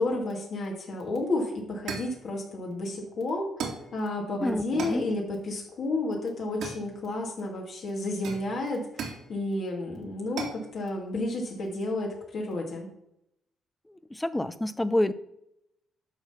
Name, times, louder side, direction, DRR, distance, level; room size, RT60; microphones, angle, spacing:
voice 1, 0.0-3.5 3.9-12.9, left 2 dB, 60° left, -1 dB, 2.4 m, -31 dB
sound 1, 1.2-1.3 1.9-2.2 3.6-3.9 4.8-5.1 6.6-7.3 8.2-9.3 10.4-10.7, right 5 dB, 75° right, 2.5 m, -36 dB
voice 2, 4.4-5.1 13.9-15.1, left 1 dB, 10° left, 14 dB, 0.7 m, -28 dB
12.0 x 4.0 x 7.1 m, 0.80 s
cardioid pair, 90°, 0 cm